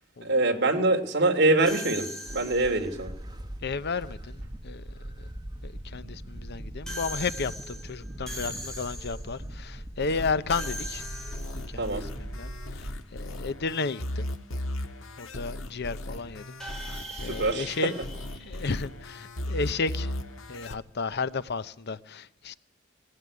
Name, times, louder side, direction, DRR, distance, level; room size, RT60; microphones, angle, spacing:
voice 1, 0.2-3.1 11.8-12.0 17.1-17.8, right 2 dB, 55° right, 3.0 m, -24 dB
sound 1, 1.7-2.9 6.9-9.4 10.5-11.8 16.6-19.1, equal, 5° left, 6.0 m, -40 dB
sound 2, 2.2-12.9, right 1 dB, 20° right, 1.3 m, -41 dB
voice 2, 3.6-4.8 5.2-5.3 5.6-11.1 11.5-14.3 15.2-17.9 18.4-20.1 20.5-22.5, left 4 dB, 55° left, 0.7 m, -33 dB
sound 3, 10.0-20.8, left 1 dB, 85° left, 1.6 m, -37 dB
20.0 x 16.0 x 9.7 m
head